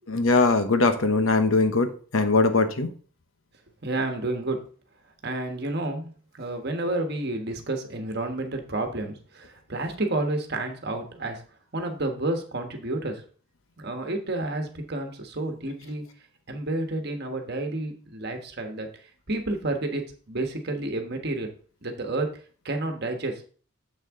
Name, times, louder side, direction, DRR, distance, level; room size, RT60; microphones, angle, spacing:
voice 1, 0.1-2.9, left 3 dB, 75° left, 8 dB, 1.0 m, -21 dB
voice 2, 3.8-4.6 5.2-6.1 6.4-11.4 11.7-13.2 13.8-16.0 16.5-18.9 19.3-20.0 20.3-21.5 21.8-22.3 22.6-23.4, right 2 dB, 50° right, 4 dB, 1.3 m, -30 dB
7.4 x 6.6 x 3.7 m, 0.42 s
head